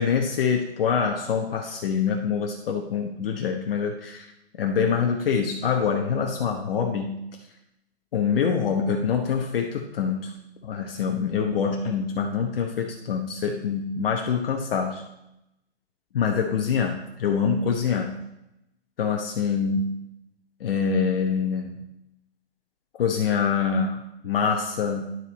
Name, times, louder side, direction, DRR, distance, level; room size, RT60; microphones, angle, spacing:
voice 1, 0.0-4.2 4.6-7.2 8.1-10.3 10.6-15.0 16.1-18.2 19.0-20.0 20.6-21.7 23.0-25.0, left 6 dB, 60° left, 2 dB, 1.0 m, -25 dB
11.0 x 4.5 x 4.1 m, 0.86 s
hypercardioid pair, 145°, 33 cm